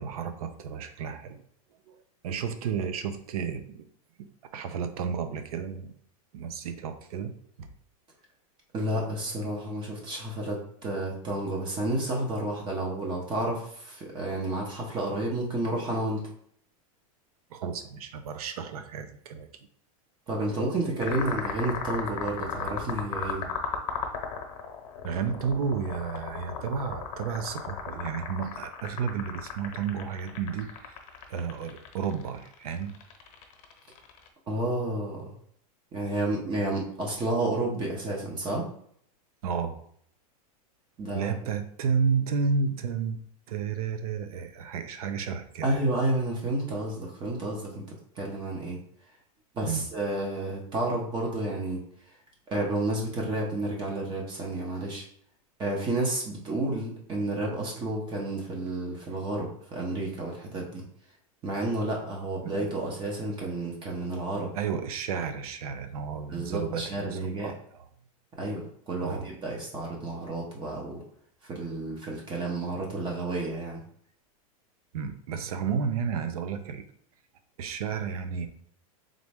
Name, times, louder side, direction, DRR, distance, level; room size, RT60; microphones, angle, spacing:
voice 1, 0.0-1.4 1.9-2.0 2.2-3.9 4.2-5.9 6.3-7.7 17.5-19.5 25.0-31.0 31.3-33.0 39.4-39.8 41.1-43.2 43.5-45.8 49.6-49.8 62.4-62.5 64.5-67.8 69.0-69.3 74.9-76.8 77.6-78.5, right 6 dB, 75° right, 9 dB, 0.7 m, -32 dB
voice 2, 8.7-16.3 20.3-23.5 34.5-35.3 35.9-38.7 41.0-41.3 45.6-48.8 49.5-51.8 52.5-55.0 55.6-60.8 61.4-64.5 66.3-67.5 68.4-71.0 71.5-73.8, right 2 dB, 25° right, -1 dB, 1.0 m, -31 dB
sound 1, 21.0-34.3, left 6 dB, 60° left, 0.9 m, -36 dB
3.8 x 3.2 x 3.5 m, 0.64 s
supercardioid pair, 150°, 19 cm